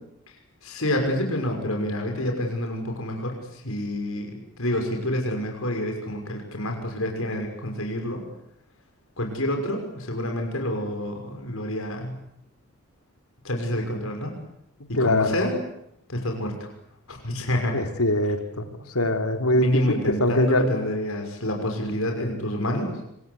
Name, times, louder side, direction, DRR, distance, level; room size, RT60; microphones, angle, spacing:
voice 1, 0.6-8.2 9.2-12.2 13.4-14.3 14.9-15.5 16.1-16.6 17.1-17.8 19.5-23.0, left 1 dB, 70° left, 3 dB, 6.1 m, -28 dB
voice 2, 14.9-15.4 17.7-18.7 18.9-19.7 20.2-20.7, left 1 dB, 90° left, 6 dB, 3.3 m, -22 dB
27.5 x 25.5 x 8.3 m, 0.76 s
head